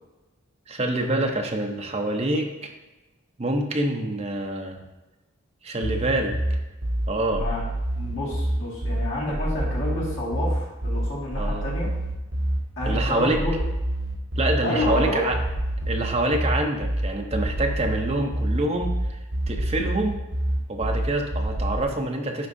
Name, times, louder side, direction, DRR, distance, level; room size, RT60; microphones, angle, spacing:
voice 1, 0.7-2.7 3.4-4.8 5.6-6.4 7.1-7.5 11.4-11.6 12.8-13.4 14.4-15.4 15.9-19.2 19.5-20.2 20.7-22.5, right 1 dB, 30° right, 2 dB, 0.6 m, -26 dB
sound 1, 5.8-21.8, right 1 dB, 70° right, 1.0 m, -27 dB
voice 2, 8.0-11.9 12.8-13.6 14.6-15.2, left 1 dB, 70° left, -5 dB, 1.8 m, -29 dB
10.5 x 3.5 x 2.6 m, 1.1 s
head